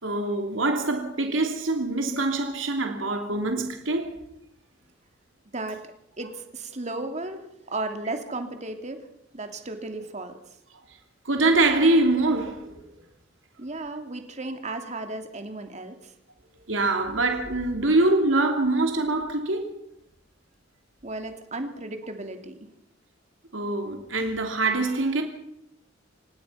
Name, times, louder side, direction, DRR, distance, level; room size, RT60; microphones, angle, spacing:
voice 1, 0.0-4.2 11.2-12.8 16.7-19.7 23.5-25.2, right 2 dB, 75° right, 3.1 m, -24 dB
voice 2, 6.2-9.0 9.3-10.4 13.6-16.1 21.0-22.6, right 2 dB, 35° right, 2.8 m, -34 dB
27.0 x 18.5 x 5.8 m
head